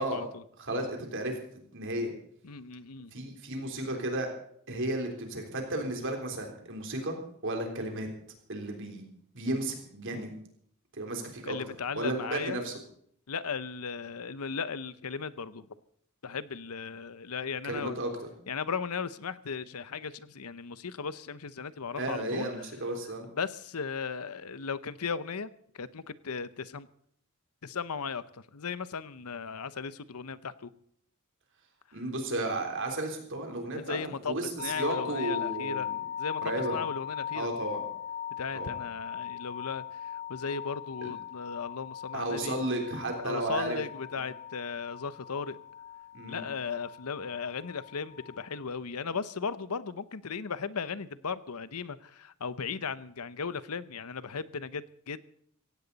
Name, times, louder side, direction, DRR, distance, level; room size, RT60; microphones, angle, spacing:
voice 1, 0.0-0.4 2.4-3.1 11.4-12.6 13.3-15.7 16.2-18.0 18.5-22.5 23.3-26.9 27.6-30.7 33.7-37.5 38.4-42.6 43.2-45.6 46.3-55.2, left 5 dB, 85° left, 16 dB, 0.8 m, -37 dB
voice 2, 0.6-1.4 1.7-2.1 3.1-4.3 4.7-8.1 8.5-9.0 9.3-10.3 10.9-11.6 12.0-12.7 17.6-18.1 22.0-23.3 31.9-34.0 34.3-36.0 36.4-36.8 37.3-37.8 38.5-38.7 41.0-41.1 42.1-43.8 44.1-44.2 46.1-46.4, right 1 dB, 60° right, 3 dB, 3.6 m, -33 dB
sound 1, 34.6-48.6, left 9 dB, 30° left, 1.7 m, -39 dB
16.5 x 16.5 x 4.1 m, 0.66 s
head